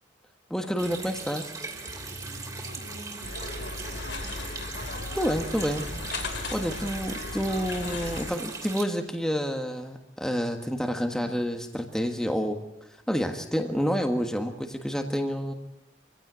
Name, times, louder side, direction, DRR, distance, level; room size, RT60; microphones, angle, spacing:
voice 1, 0.5-1.5 5.1-5.8 6.5-12.6 12.9-15.5, equal, 5° left, 4 dB, 1.4 m, -29 dB
Water tap faucet, 0.8-8.8, right 4 dB, 20° right, 2.9 m, -39 dB
Mechanisms, 1.7-8.4, equal, 40° right, 3.9 m, -49 dB
voice 2, 2.6-4.5 4.9-5.3 11.1-11.4, equal, 85° left, 1 dB, 7.8 m, -47 dB
sound 1, 3.2-8.3, left 3 dB, 60° left, 2.4 m, -36 dB
25.0 x 16.0 x 9.3 m, 0.96 s
head